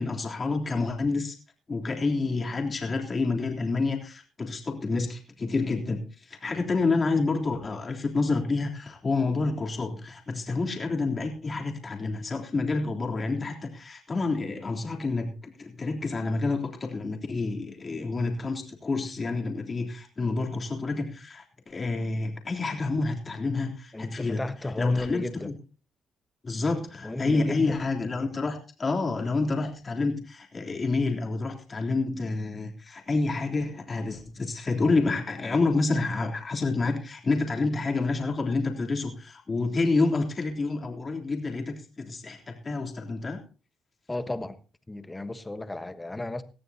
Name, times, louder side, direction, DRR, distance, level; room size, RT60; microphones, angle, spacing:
voice 1, 0.0-1.4 1.7-24.5 24.8-25.6 26.4-43.4, left 3 dB, 35° left, 3.5 m, -28 dB
voice 2, 23.9-25.5 27.0-27.8 44.1-44.6 44.9-46.4, left 2 dB, 15° left, 1.3 m, -33 dB
19.0 x 14.0 x 2.9 m
cardioid pair, 90°, 0 cm